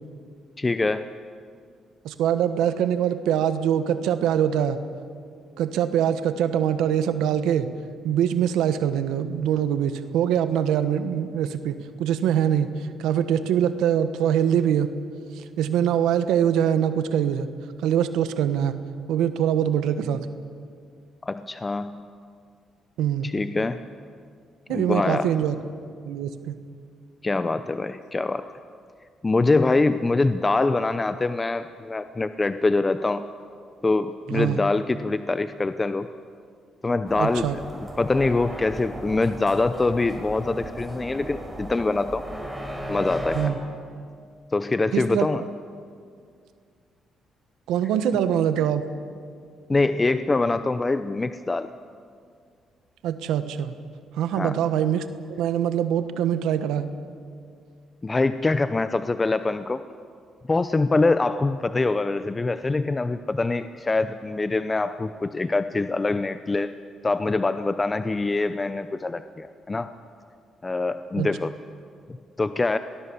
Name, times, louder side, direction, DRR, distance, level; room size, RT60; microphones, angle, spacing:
voice 1, 0.6-1.1 21.2-22.1 23.2-23.8 24.7-25.3 27.2-28.4 29.2-33.2 33.8-36.1 36.8-42.2 42.9-43.5 44.5-45.4 49.7-51.7 54.3-54.6 58.0-59.8 60.5-66.7 67.0-69.9 70.6-71.5 72.4-72.8, left 3 dB, 25° left, 11 dB, 0.7 m, -24 dB
voice 2, 2.0-4.8 5.6-7.7 8.0-12.7 13.0-14.9 15.4-17.5 17.8-18.7 19.1-20.3 23.0-23.3 24.7-25.5 26.0-26.6 34.3-34.6 37.2-37.6 43.3-43.6 44.9-45.3 47.7-48.9 53.0-53.7 54.2-55.1 55.4-56.9 71.2-71.3, right 9 dB, 90° right, 11 dB, 1.2 m, -23 dB
sound 1, 37.1-43.5, equal, 5° right, 4.1 m, -35 dB
25.5 x 19.5 x 7.2 m, 2.2 s
cardioid pair, 90°, 0 cm